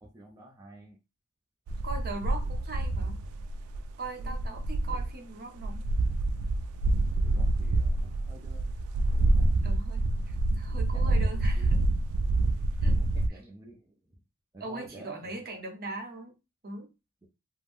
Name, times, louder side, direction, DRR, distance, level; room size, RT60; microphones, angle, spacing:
voice 1, 0.0-1.0 4.2-4.6 4.9-5.0 7.1-8.7 9.1-9.5 10.9-11.7 12.9-14.2 14.5-15.6, right 2 dB, 15° right, -2 dB, 0.4 m, -50 dB
sound 1, 1.7-5.1 5.6-13.3, right 2 dB, 85° right, 0.3 m, -27 dB
voice 2, 1.8-3.2 4.0-5.8 9.6-11.8 12.8-13.0 13.3-13.4 14.6-16.3 16.6-16.9, right 2 dB, 45° right, 3 dB, 0.8 m, -40 dB
2.5 x 2.0 x 3.4 m, 0.26 s
head